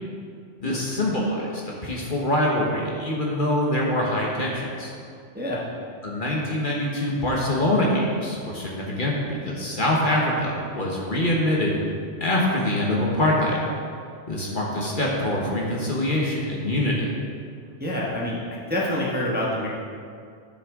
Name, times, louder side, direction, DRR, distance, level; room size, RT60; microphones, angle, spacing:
voice 1, 0.6-4.9 6.0-9.1 9.4-11.8 12.2-13.6 14.3-17.1, left 1 dB, 45° left, -3 dB, 1.3 m, -24 dB
voice 2, 17.6-19.7, left 1 dB, 10° right, -5 dB, 1.0 m, -27 dB
11.0 x 6.2 x 3.7 m, 2.3 s
omnidirectional pair, 1.3 m